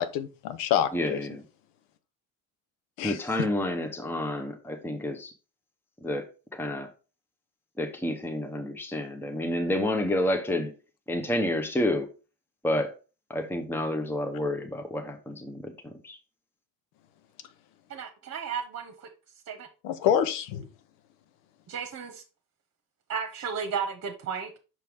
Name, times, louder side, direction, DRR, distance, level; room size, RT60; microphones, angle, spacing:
voice 1, 0.0-1.2 3.0-3.2 19.8-20.7, left 9 dB, 90° left, 0.8 m, -27 dB
voice 2, 0.9-1.4 3.0-5.3 6.0-6.9 7.8-10.7 11.1-12.1 12.6-13.0 13.3-16.2, left 1 dB, 5° left, 0.8 m, -29 dB
voice 3, 17.9-19.1 19.5-19.7 21.7-22.2 23.1-24.5, right 6 dB, 40° right, 1.1 m, -34 dB
6.1 x 4.5 x 3.5 m
supercardioid pair, 80°, 40 cm